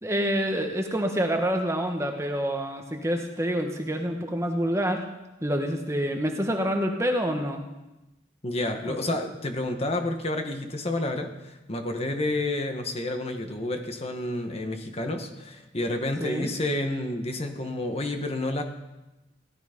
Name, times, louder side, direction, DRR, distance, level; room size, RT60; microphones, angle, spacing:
voice 1, 0.0-5.0 5.4-7.6 8.9-9.2 16.2-16.5, equal, 15° right, 3 dB, 1.3 m, -27 dB
voice 2, 8.4-18.6, left 1 dB, 35° left, 4 dB, 1.5 m, -30 dB
17.0 x 12.5 x 5.2 m, 1.0 s
head